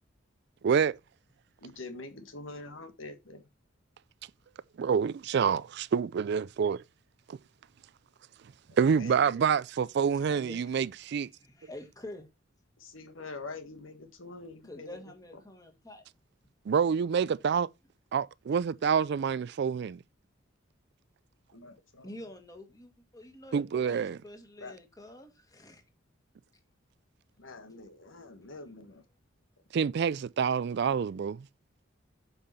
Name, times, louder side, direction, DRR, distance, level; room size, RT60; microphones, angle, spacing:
voice 1, 0.6-1.0 4.8-6.8 7.3-7.4 8.8-11.3 16.7-17.7 18.1-20.0 23.5-24.2 29.7-31.5, right 6 dB, 60° right, 0.4 m, -27 dB
voice 2, 1.6-3.4 8.7-9.4 12.8-15.0 21.5-22.1 24.6-24.8 27.4-29.0, left 3 dB, 85° left, 1.7 m, -45 dB
voice 3, 10.3-10.8 11.4-12.3 14.6-16.0 22.0-25.8, left 1 dB, 20° left, 2.0 m, -47 dB
8.8 x 5.7 x 4.2 m
head